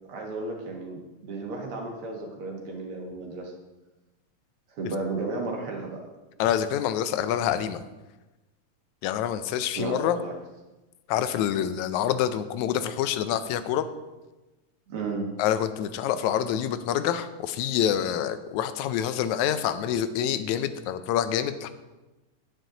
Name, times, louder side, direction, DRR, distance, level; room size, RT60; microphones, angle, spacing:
voice 1, 0.1-3.5 4.7-6.0 9.8-10.3 14.9-15.3, right 3 dB, 55° right, 0 dB, 2.1 m, -33 dB
voice 2, 6.4-7.8 9.0-10.2 11.1-13.9 15.4-21.7, left 10 dB, 85° left, 12 dB, 2.0 m, -26 dB
9.8 x 9.2 x 3.9 m, 1.1 s
omnidirectional pair, 3.3 m